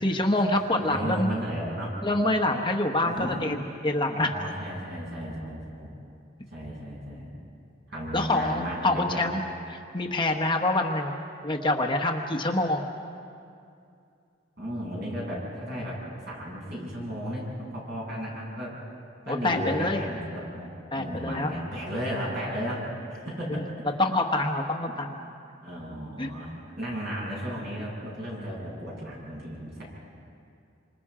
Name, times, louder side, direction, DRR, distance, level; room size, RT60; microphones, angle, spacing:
voice 1, 0.0-1.3 2.0-3.6 3.8-4.4 8.1-9.4 9.7-11.1 11.4-12.8 19.3-20.0 20.9-21.6 23.6-23.7 24.0-25.2 26.2-26.3, left 2 dB, 25° left, 3 dB, 1.1 m, -26 dB
voice 2, 0.8-1.9 3.2-3.3 4.2-5.9 6.5-7.3 7.9-9.2 14.6-17.4 17.7-18.7 19.2-20.7 21.0-23.9 25.6-29.8, equal, 55° right, -4 dB, 7.9 m, -34 dB
27.5 x 26.0 x 4.9 m, 2.5 s
head